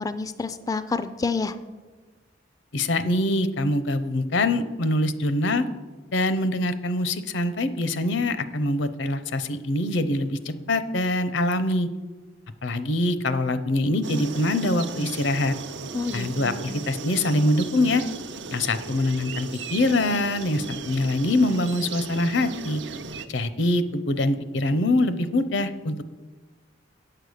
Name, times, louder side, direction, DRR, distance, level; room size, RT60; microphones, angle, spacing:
voice 1, 0.0-1.5 15.9-16.7, left 4 dB, 20° left, 11 dB, 0.3 m, -29 dB
voice 2, 2.7-5.7 6.1-11.9 12.6-15.5 16.1-18.0 18.5-22.8 23.3-26.0, left 1 dB, 80° left, 13 dB, 0.6 m, -24 dB
sound 1, 14.0-23.3, right 4 dB, 75° right, 0.6 m, -37 dB
8.9 x 6.7 x 6.4 m, 1.3 s
head